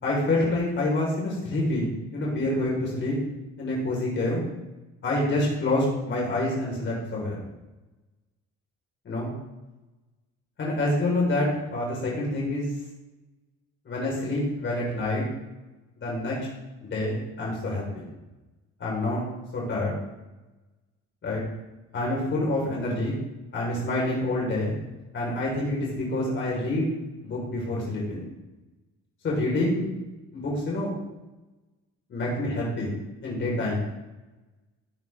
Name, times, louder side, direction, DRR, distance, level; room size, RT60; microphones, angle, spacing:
voice 1, 0.0-3.2 3.6-4.4 5.0-7.4 9.0-9.3 10.6-12.7 13.8-15.2 16.0-16.4 16.8-18.0 18.8-19.2 19.5-20.0 21.2-21.4 21.9-23.2 23.5-24.7 25.1-26.9 27.2-28.2 29.2-29.9 30.3-30.9 32.1-32.9 33.2-33.7, left 1 dB, 40° left, -4 dB, 5.1 m, -27 dB
17.5 x 9.5 x 3.8 m, 1.1 s
cardioid pair, 130°, 29 cm